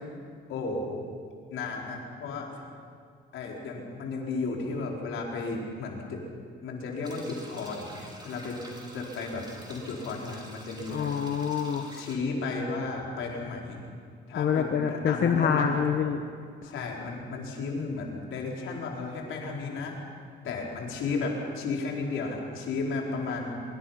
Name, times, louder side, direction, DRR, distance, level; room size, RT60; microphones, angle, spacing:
voice 1, 0.5-1.0 1.5-2.7 3.3-6.2 6.6-7.9 8.2-8.6 8.9-11.1 11.9-13.9 14.3-15.8 16.7-20.0 20.4-23.6, left 3 dB, 85° left, -1 dB, 4.6 m, -33 dB
sound 1, 7.0-12.2, right 1 dB, 20° right, 5.2 m, -48 dB
voice 2, 10.9-11.9 14.3-16.2 16.6-16.7, left 7 dB, 55° left, 5 dB, 1.3 m, -26 dB
24.5 x 23.5 x 5.9 m, 2.1 s
cardioid pair, 90°, 20 cm